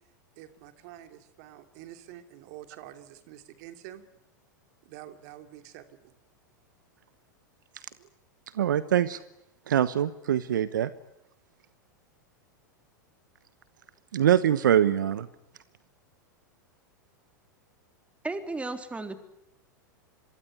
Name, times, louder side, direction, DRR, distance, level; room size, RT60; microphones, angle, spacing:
voice 1, 0.3-4.0 4.8-6.1 8.0-8.1, right 12 dB, 55° right, 8 dB, 2.9 m, -47 dB
voice 2, 8.5-9.2 9.7-10.9 14.1-15.3, right 10 dB, 75° right, 14 dB, 1.1 m, -23 dB
voice 3, 18.2-19.2, right 3 dB, 10° right, 7 dB, 3.4 m, -34 dB
26.5 x 23.0 x 9.7 m, 0.82 s
hypercardioid pair, 100°, 10 cm